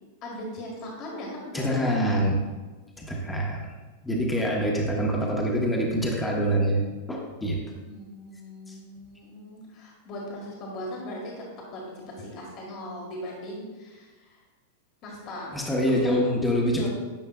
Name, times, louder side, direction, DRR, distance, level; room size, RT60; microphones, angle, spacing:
voice 1, 0.2-1.8 7.8-11.4 11.7-14.4 15.0-16.1 16.8-16.9, left 1 dB, 45° left, -2 dB, 1.8 m, -39 dB
voice 2, 1.5-2.4 3.0-3.7 4.0-6.8 7.1-7.6 8.7-8.8 15.5-16.9, equal, 10° left, -2 dB, 1.2 m, -25 dB
10.0 x 5.4 x 2.4 m, 1.3 s
hypercardioid pair, 100°, 0 cm